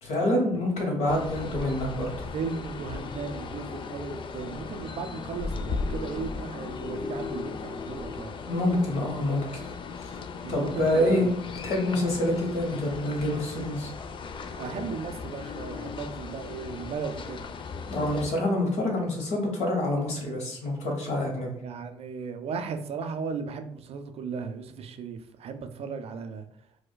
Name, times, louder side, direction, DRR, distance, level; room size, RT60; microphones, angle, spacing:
voice 1, 0.0-2.3 8.5-9.4 10.0-10.1 10.5-11.3 11.6-13.9 17.9-21.5, left 1 dB, 65° left, 1.2 m, -27 dB
sound 1, 1.1-18.3, left 4 dB, 45° left, 0.4 m, -37 dB
voice 2, 2.3-8.3 10.4-11.3 14.5-17.5 21.6-26.5, right 5 dB, 55° right, 0.4 m, -36 dB
4.6 x 2.2 x 2.2 m
supercardioid pair, 65°, 12 cm